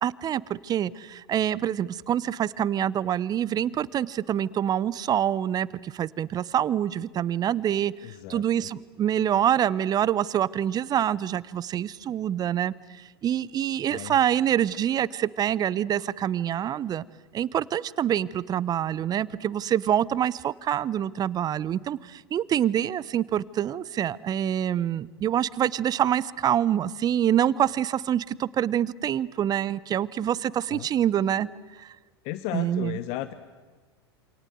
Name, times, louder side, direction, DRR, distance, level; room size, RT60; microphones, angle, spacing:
voice 1, 0.0-7.9 8.3-17.0 17.3-31.5 31.8-31.9 32.5-33.0, right 10 dB, 30° right, 21 dB, 0.9 m, -26 dB
voice 2, 8.0-8.7 13.9-14.2 30.7-30.9 32.2-33.3, left 15 dB, 50° left, 13 dB, 1.2 m, -35 dB
28.0 x 27.0 x 7.8 m, 1.3 s
figure-of-eight pair, 85°, 13 cm